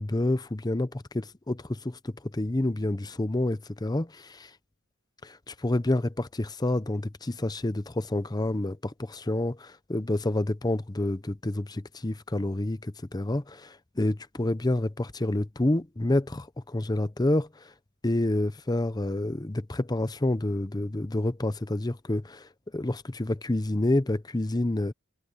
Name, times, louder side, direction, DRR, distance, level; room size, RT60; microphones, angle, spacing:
voice 1, 0.0-4.5 5.2-17.7 18.0-24.9, left 1 dB, 20° left, 0.7 m, -28 dB
head